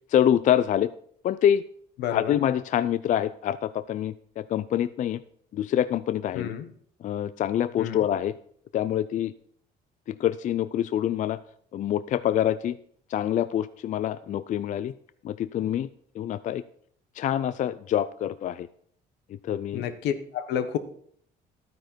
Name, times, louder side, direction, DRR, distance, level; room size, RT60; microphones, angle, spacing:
voice 1, 0.1-0.9 1.2-1.6 2.1-5.2 5.5-6.5 7.0-8.3 8.7-9.3 10.1-11.4 11.7-12.8 13.1-14.9 15.2-15.9 16.2-16.6 17.2-18.7 19.4-19.9, left 10 dB, 50° left, 14 dB, 0.4 m, -26 dB
voice 2, 2.0-2.4 6.3-6.7 7.8-8.0 19.7-20.8, left 9 dB, 80° left, 10 dB, 1.1 m, -30 dB
12.0 x 9.4 x 4.5 m, 0.63 s
cardioid pair, 110°, 17 cm